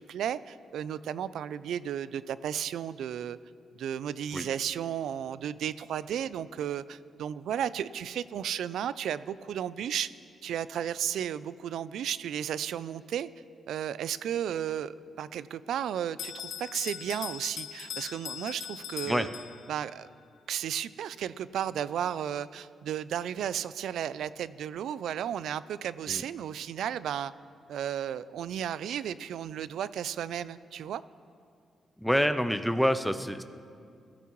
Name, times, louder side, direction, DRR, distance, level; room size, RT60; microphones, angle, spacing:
voice 1, 0.0-3.4 3.8-10.1 10.4-13.3 13.7-19.3 19.7-20.1 20.5-27.3 27.7-31.0, right 9 dB, 90° right, 17 dB, 0.4 m, -34 dB
Bell, 16.2-19.9, left 9 dB, 75° left, 0.5 m, -40 dB
voice 2, 32.0-33.4, equal, ahead, 10 dB, 0.6 m, -27 dB
22.0 x 14.0 x 3.1 m, 2.4 s
cardioid pair, 130°, 0 cm